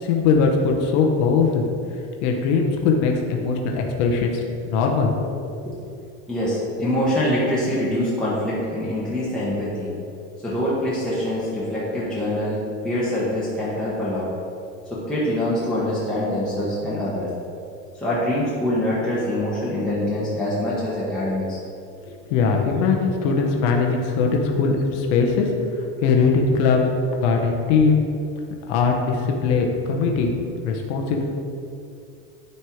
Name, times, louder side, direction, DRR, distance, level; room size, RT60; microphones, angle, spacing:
voice 1, 0.0-1.6 2.2-5.2 22.3-25.5 26.0-26.8 27.2-28.0 28.7-30.3 30.6-31.2, left 5 dB, 65° left, 2 dB, 1.0 m, -20 dB
voice 2, 6.3-9.9 10.4-14.3 14.9-17.3 17.9-21.6, left 1 dB, ahead, -9 dB, 1.1 m, -24 dB
9.6 x 3.4 x 4.5 m, 2.5 s
supercardioid pair, 145°, 36 cm